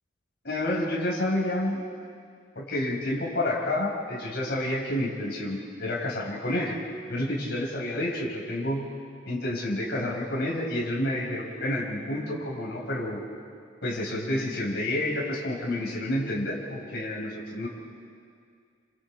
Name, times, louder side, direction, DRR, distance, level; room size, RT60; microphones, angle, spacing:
voice 1, 0.4-1.8 2.6-6.8 7.1-8.9 9.3-13.2 13.8-17.7, left 1 dB, 55° left, -4 dB, 5.4 m, -29 dB
30.0 x 26.5 x 4.7 m, 2.2 s
head